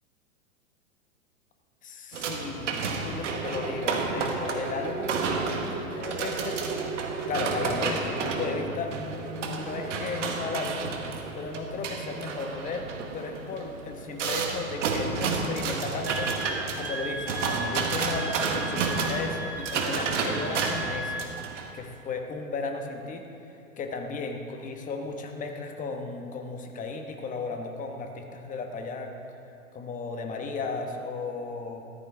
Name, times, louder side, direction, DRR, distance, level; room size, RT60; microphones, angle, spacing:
voice 1, 1.8-6.8 7.2-10.9 11.3-12.9 13.1-16.3 16.7-21.2 21.5-23.2 23.8-29.1 29.7-31.9, left 4 dB, 20° left, 4 dB, 1.2 m, -35 dB
sound 1, 2.1-21.7, right 4 dB, 60° right, 1.6 m, -31 dB
Wind instrument woodwind instrument, 16.0-21.4, right 1 dB, 5° right, 0.6 m, -36 dB
14.0 x 13.5 x 3.6 m, 2.9 s
figure-of-eight pair, 105°, 41 cm